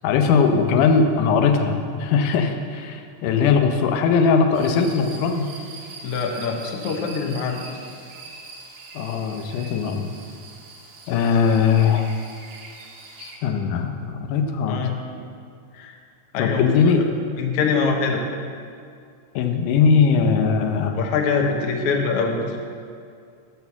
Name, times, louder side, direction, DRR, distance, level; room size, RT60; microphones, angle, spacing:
voice 1, 0.0-5.5 9.0-10.1 11.1-12.1 13.2-14.8 16.4-17.0 19.4-21.0, left 5 dB, 90° left, 5 dB, 2.3 m, -20 dB
sound 1, 4.5-13.4, right 3 dB, 85° right, 2.6 m, -42 dB
voice 2, 6.0-7.6 14.7-15.0 15.7-15.9 16.3-17.0 17.4-18.2 20.9-22.6, left 5 dB, 70° left, 2 dB, 1.4 m, -24 dB
6.8 x 6.2 x 7.0 m, 2.3 s
omnidirectional pair, 3.6 m